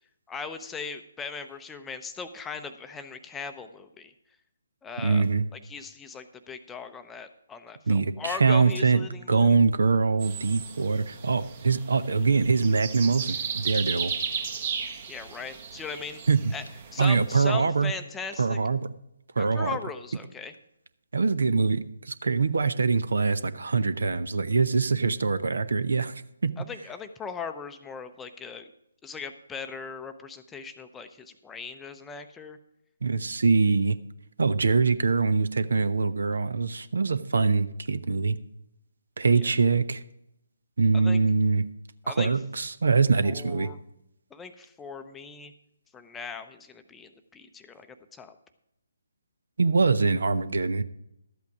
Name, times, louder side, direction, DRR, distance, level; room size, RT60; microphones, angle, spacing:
voice 1, 0.3-4.1 4.8-5.3 5.5-9.6 15.1-16.2 16.5-16.6 16.9-18.6 19.4-20.5 26.6-28.7 29.0-32.6 39.4-39.5 40.9-41.2 42.0-42.3 43.2-43.8 44.3-45.5 45.9-48.3, left 5 dB, 10° left, 8 dB, 0.6 m, -39 dB
voice 2, 5.0-5.5 7.9-14.1 16.3-16.5 17.0-17.9 18.4-18.9 19.4-19.7 21.1-26.1 26.4-26.5 33.0-34.0 34.4-38.4 39.2-40.0 40.8-41.6 42.1-43.7 49.6-50.8, right 4 dB, 60° right, 14 dB, 0.7 m, -23 dB
sound 1, 10.2-17.5, right 6 dB, 35° right, 1.2 m, -35 dB
12.5 x 8.3 x 4.8 m, 0.83 s
figure-of-eight pair, 140°, 0 cm